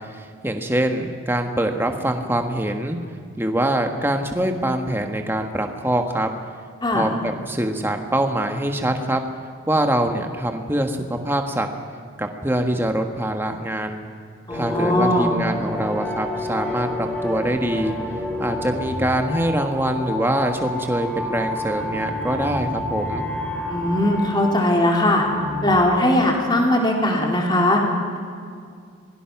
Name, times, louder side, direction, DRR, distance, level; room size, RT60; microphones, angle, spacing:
voice 1, 0.0-3.0 3.4-6.3 6.9-9.2 9.7-11.7 12.2-14.0 14.5-18.0 18.4-23.3, right 1 dB, 10° right, 4 dB, 1.5 m, -24 dB
voice 2, 14.5-15.3 23.7-25.2 25.6-27.8, left 1 dB, 20° left, 0 dB, 3.0 m, -19 dB
sound 1, 14.5-25.8, left 1 dB, 5° left, 3.1 m, -29 dB
26.5 x 21.5 x 6.0 m, 2.2 s
head